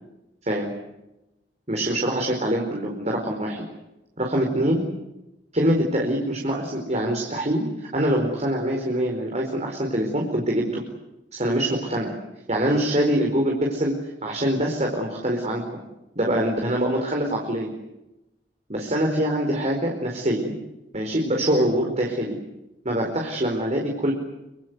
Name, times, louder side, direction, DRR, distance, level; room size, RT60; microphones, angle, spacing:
voice 1, 1.7-3.6 4.2-4.8 5.5-10.8 11.3-12.1 12.5-14.0 14.2-15.8 16.2-17.7 18.7-20.5 20.9-22.4 22.8-24.1, right 1 dB, 40° right, 0 dB, 4.6 m, -24 dB
26.0 x 26.0 x 8.1 m, 0.94 s
head